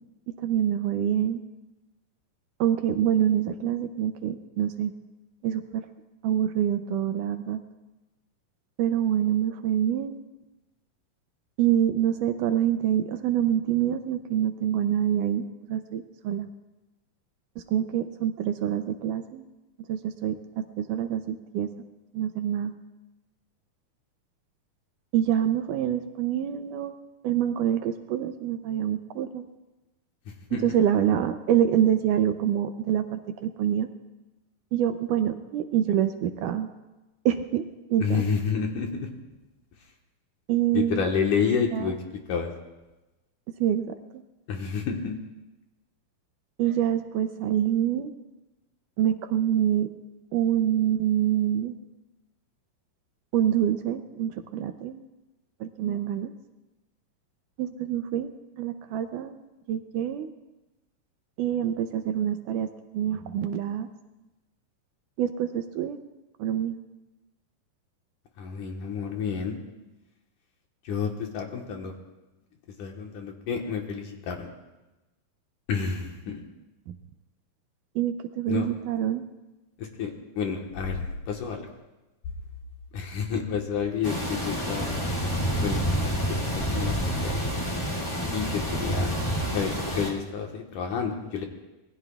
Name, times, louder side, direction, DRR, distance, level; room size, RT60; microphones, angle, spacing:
voice 1, 0.4-1.4 2.6-4.9 5.4-5.9 6.2-7.6 8.8-10.2 11.6-16.5 17.6-19.5 19.9-21.7 22.1-22.7 25.1-26.9 27.2-29.4 30.6-33.9 34.7-36.7 37.3-37.6 37.9-38.2 40.5-41.0 41.7-41.9 43.6-44.2 46.6-48.1 49.0-49.9 50.3-51.7 53.3-55.0 55.6-56.3 57.6-58.3 58.6-59.4 59.7-60.3 61.4-63.9 65.2-66.0 66.4-66.8 76.9-77.0 78.0-79.2, right 10 dB, 80° right, 8 dB, 1.9 m, -26 dB
voice 2, 30.3-30.8 38.0-39.1 40.7-42.0 42.3-42.5 44.5-45.2 68.4-69.6 70.8-71.9 72.8-74.5 75.7-76.4 78.5-78.7 79.8-80.1 80.4-81.7 82.9-85.0 85.6-87.7 88.3-89.1 89.5-91.5, left 6 dB, 65° left, 2 dB, 2.5 m, -30 dB
sound 1, 84.0-90.1, equal, 15° left, 1.2 m, -28 dB
26.0 x 20.5 x 2.3 m, 1.1 s
omnidirectional pair, 4.2 m